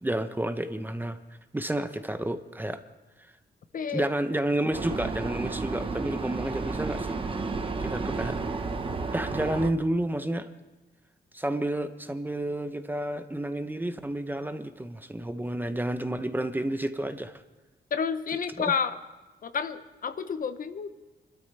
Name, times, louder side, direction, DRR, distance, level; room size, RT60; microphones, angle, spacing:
voice 1, 0.0-1.2 1.5-2.8 3.9-7.2 7.8-8.4 9.1-10.5 11.3-17.4 18.6-18.7, right 1 dB, 10° right, 9 dB, 0.7 m, -30 dB
voice 2, 3.7-4.1 17.9-19.0 19.4-20.9, left 6 dB, 55° left, 11 dB, 0.8 m, -30 dB
Vehicle, 4.7-9.7, right 4 dB, 30° right, 1.0 m, -32 dB
25.0 x 12.5 x 3.3 m, 1.2 s
wide cardioid pair, 120°, 18 cm